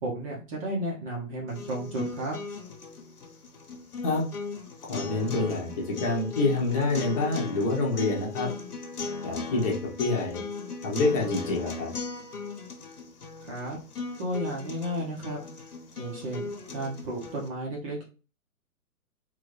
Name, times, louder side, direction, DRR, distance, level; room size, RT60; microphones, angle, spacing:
voice 1, 0.0-2.4 13.5-13.8 14.2-15.4 16.0-18.0, right 1 dB, 20° right, -3 dB, 0.9 m, -33 dB
sound 1, 1.5-17.5, left 4 dB, 80° left, 1.3 m, -38 dB
voice 2, 4.9-8.5 9.2-10.4 10.8-11.9, left 3 dB, 25° left, -2 dB, 1.1 m, -27 dB
3.9 x 2.7 x 3.3 m, 0.34 s
hypercardioid pair, 135°, 44 cm